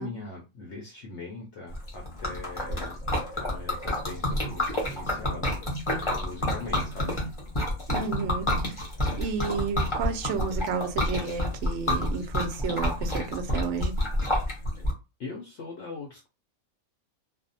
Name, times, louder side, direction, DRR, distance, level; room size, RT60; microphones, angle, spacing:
voice 1, 0.0-5.6 6.2-7.2 15.2-16.3, left 3 dB, 65° left, 0.7 m, -41 dB
Liquid, 1.7-14.9, left 1 dB, 30° left, 0.6 m, -29 dB
voice 2, 7.9-8.8 9.2-14.0, right 5 dB, 65° right, 0.7 m, -31 dB
2.4 x 2.0 x 2.6 m
omnidirectional pair, 1.5 m